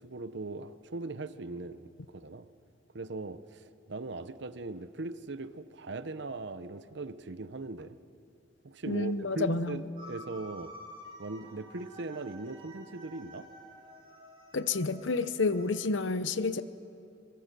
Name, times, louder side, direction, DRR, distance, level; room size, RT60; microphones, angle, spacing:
voice 1, 0.0-2.5 2.9-8.0 8.6-10.7 11.2-13.5, right 3 dB, 65° right, 0.8 m, -40 dB
voice 2, 8.9-9.8 14.5-16.6, left 3 dB, 80° left, 0.8 m, -29 dB
sound 1, 10.0-16.0, equal, 30° right, 2.9 m, -50 dB
24.0 x 22.5 x 6.8 m
head